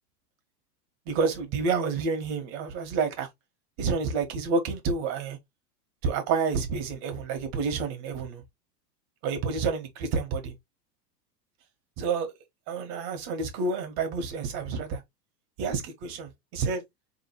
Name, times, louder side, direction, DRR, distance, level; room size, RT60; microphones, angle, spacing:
voice 1, 1.1-3.3 3.8-5.4 6.0-8.4 9.2-10.5 12.0-12.3 12.7-15.0 15.6-16.8, right 5 dB, 50° right, 1.7 m, -29 dB
3.7 x 2.5 x 4.6 m
hypercardioid pair, 120°, 50 cm